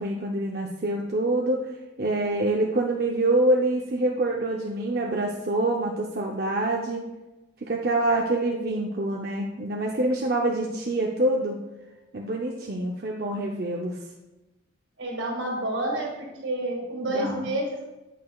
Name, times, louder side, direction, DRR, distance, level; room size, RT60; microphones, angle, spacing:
voice 1, 0.0-1.7 2.0-7.0 7.7-11.6 12.1-14.0 17.0-17.5, right 1 dB, 50° right, -1 dB, 0.6 m, -26 dB
voice 2, 15.0-17.9, right 1 dB, 80° right, 0 dB, 1.9 m, -29 dB
8.5 x 8.4 x 2.3 m, 1.1 s
head